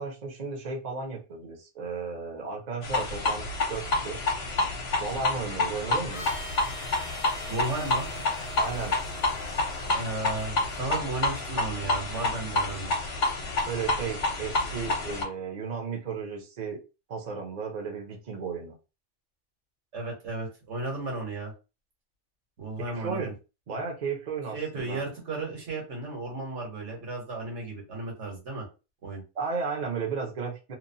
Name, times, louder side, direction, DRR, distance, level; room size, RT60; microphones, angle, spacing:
voice 1, 0.0-4.2 5.0-6.4 8.6-8.9 13.7-16.8 17.1-18.7 22.8-23.3 23.7-25.0 29.3-30.7, right 5 dB, 45° right, 0 dB, 0.7 m, -34 dB
sound 1, 2.8-15.2, left 2 dB, 60° left, 1.0 m, -29 dB
Harmonica, 6.1-10.8, equal, 35° left, 0.7 m, -45 dB
voice 2, 7.5-8.1 9.9-12.9 19.9-21.5 22.6-23.2 24.5-28.7 29.0-29.2, right 3 dB, 75° right, -1 dB, 1.5 m, -34 dB
2.9 x 2.1 x 2.6 m, 0.29 s
omnidirectional pair, 1.2 m